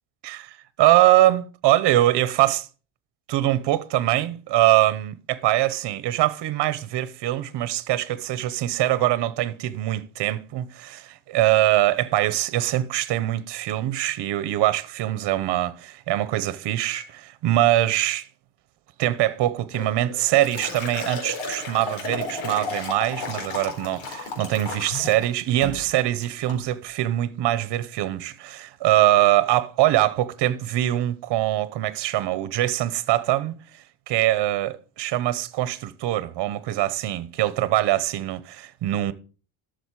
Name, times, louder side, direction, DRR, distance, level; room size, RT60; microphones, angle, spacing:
voice 1, 0.2-2.7 3.3-18.3 19.0-33.5 34.1-39.1, right 14 dB, 60° right, 1.0 m, -23 dB
Liquid, 19.7-25.3 25.6-25.9 26.2-26.6, left 3 dB, 85° left, 3.9 m, -33 dB
12.5 x 6.6 x 4.8 m
cardioid pair, 140°, 47 cm